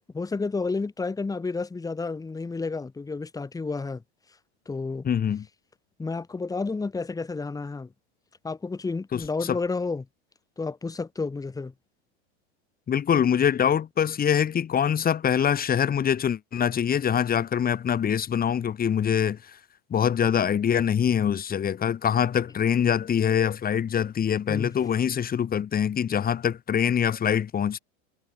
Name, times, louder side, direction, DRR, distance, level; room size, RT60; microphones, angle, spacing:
voice 1, 0.1-4.0 4.7-5.1 6.0-7.9 8.4-10.1 10.6-11.7 24.5-24.7, left 4 dB, 10° left, 2.5 m, -31 dB
voice 2, 5.0-5.5 9.1-9.6 12.9-19.6 19.9-27.8, left 8 dB, 25° left, 7.1 m, -24 dB
hypercardioid pair, 115°, 34 cm